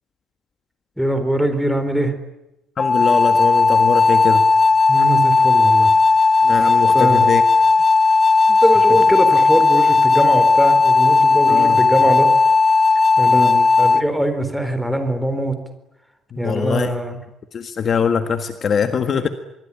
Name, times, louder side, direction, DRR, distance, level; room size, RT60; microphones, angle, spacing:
voice 1, 1.0-2.1 4.9-5.9 6.9-7.3 8.5-12.3 13.2-15.6 16.4-17.2, right 1 dB, ahead, 8 dB, 4.1 m, -22 dB
voice 2, 2.8-4.4 6.4-7.4 11.5-11.8 13.3-13.7 16.3-16.9 17.5-19.3, left 6 dB, 35° left, 8 dB, 1.7 m, -22 dB
sound 1, 2.8-14.0, left 4 dB, 20° left, 0.9 m, -15 dB
25.5 x 23.0 x 9.8 m, 0.91 s
cardioid pair, 155°, 0 cm